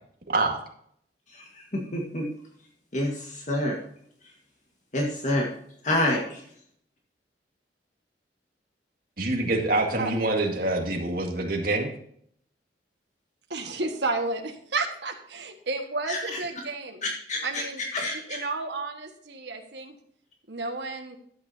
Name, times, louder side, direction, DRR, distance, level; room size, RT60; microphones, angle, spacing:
voice 1, 0.3-0.6 9.2-11.9, right 2 dB, 55° right, 2 dB, 2.0 m, -26 dB
voice 2, 1.7-2.3 2.9-3.8 4.9-5.5 5.8-6.4 16.1-16.2 17.0-17.6 17.9-18.4, left 1 dB, 45° left, 0 dB, 1.7 m, -27 dB
voice 3, 13.5-17.0 17.4-17.8 18.1-19.9 20.5-21.2, right 3 dB, 75° right, 4 dB, 1.6 m, -32 dB
12.5 x 8.8 x 2.8 m, 0.65 s
head